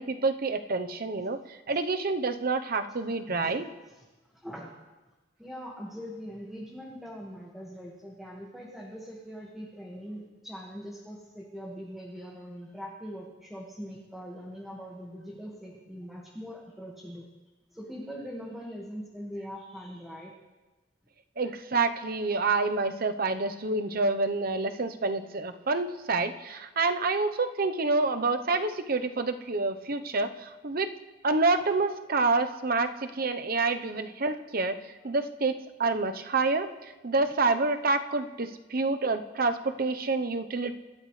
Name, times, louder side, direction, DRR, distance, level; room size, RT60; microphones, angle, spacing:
voice 1, 0.0-3.6 21.4-30.9 31.2-40.8, right 3 dB, 50° right, 8 dB, 0.8 m, -28 dB
voice 2, 3.9-4.7 5.4-17.3 17.7-20.3, equal, ahead, -3 dB, 1.7 m, -42 dB
26.5 x 13.0 x 3.3 m, 1.1 s
head